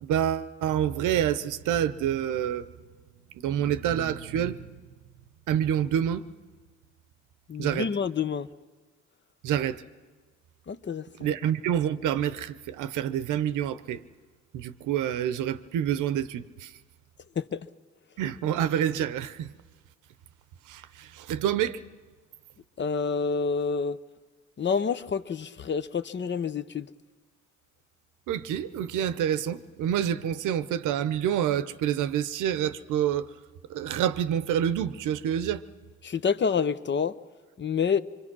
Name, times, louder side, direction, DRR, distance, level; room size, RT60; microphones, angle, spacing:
voice 1, 0.0-2.7 3.4-4.7 5.5-6.2 7.6-7.9 9.4-9.8 11.2-14.0 14.5-16.7 18.2-19.5 20.7-21.8 28.3-33.3 33.7-35.6, right 10 dB, 85° right, 0.9 m, -27 dB
voice 2, 7.5-8.5 10.7-11.0 17.4-17.6 22.8-24.0 24.6-26.9 36.0-37.1 37.6-38.0, left 6 dB, 35° left, 0.8 m, -28 dB
25.5 x 24.0 x 6.1 m
cardioid pair, 90°, 30 cm